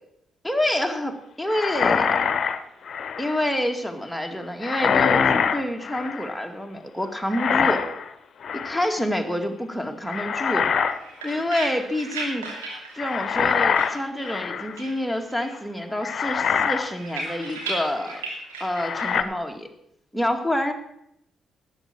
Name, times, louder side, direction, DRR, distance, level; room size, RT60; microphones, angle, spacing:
voice 1, 0.4-2.1 3.2-5.2 5.5-7.8 8.5-10.7 11.2-12.5 12.9-18.2 18.6-19.7 20.1-20.7, left 1 dB, 5° left, 4 dB, 2.2 m, -27 dB
sound 1, 1.5-3.5 4.6-6.4 7.3-8.1 8.4-8.9 10.1-11.0 11.3-11.5 13.0-14.8 15.5-15.6 16.0-16.9 17.3-17.5 18.8-19.2, left 6 dB, 55° left, 0.9 m, -24 dB
sound 2, 10.8-14.5 14.8-15.6 15.9-19.2, right 2 dB, 90° right, 2.7 m, -36 dB
12.0 x 8.8 x 7.5 m, 0.76 s
hypercardioid pair, 45°, 0 cm